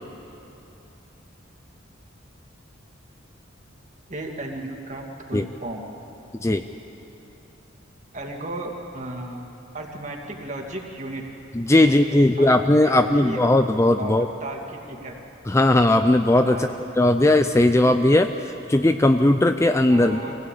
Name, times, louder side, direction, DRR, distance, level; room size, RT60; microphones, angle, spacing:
voice 1, 4.1-5.8 8.1-9.5 9.7-11.2 11.8-13.5 14.0-15.1 16.4-16.7 19.9-20.4, right 1 dB, 35° right, 1 dB, 2.4 m, -35 dB
voice 2, 11.6-14.3 15.5-16.7 17.0-18.3 18.7-20.2, left 1 dB, 15° left, 8 dB, 0.4 m, -18 dB
24.0 x 16.5 x 8.5 m, 3.0 s
head